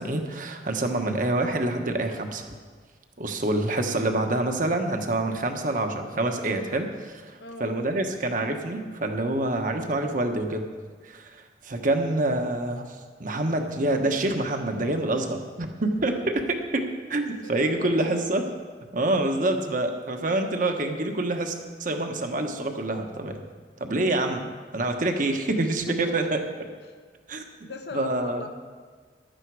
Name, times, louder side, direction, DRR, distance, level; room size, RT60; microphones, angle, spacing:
voice 1, 0.0-2.5 3.2-10.7 11.0-18.4 18.9-23.4 23.8-26.4 27.3-27.4 27.9-28.4, right 2 dB, 50° right, 5 dB, 1.3 m, -27 dB
voice 2, 7.4-7.8 16.0-16.3 17.4-18.2 18.7-18.8 25.6-26.4 26.8-26.9 27.4-28.5, left 2 dB, 70° left, 5 dB, 1.0 m, -40 dB
15.5 x 11.5 x 4.8 m, 1.5 s
head